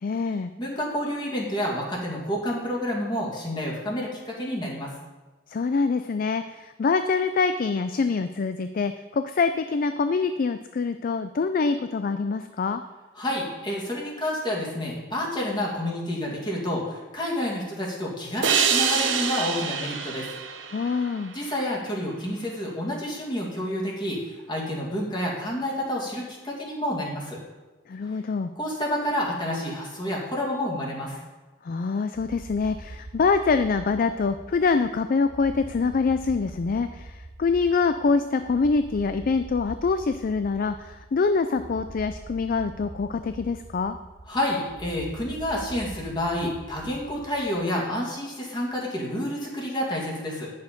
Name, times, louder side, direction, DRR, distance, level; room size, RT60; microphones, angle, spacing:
voice 1, 0.0-0.5 5.5-12.8 20.7-21.3 27.9-28.5 31.6-44.0, left 4 dB, 45° left, 9 dB, 0.4 m, -25 dB
voice 2, 0.6-4.9 13.2-20.3 21.3-24.2 24.5-27.4 28.6-31.2 44.3-50.5, left 1 dB, 25° left, -4 dB, 2.3 m, -29 dB
sound 1, 18.4-21.7, right 6 dB, 70° right, 1.0 m, -26 dB
sound 2, 32.1-47.7, right 2 dB, 40° right, 0.7 m, -44 dB
10.5 x 6.6 x 5.2 m, 1.2 s
head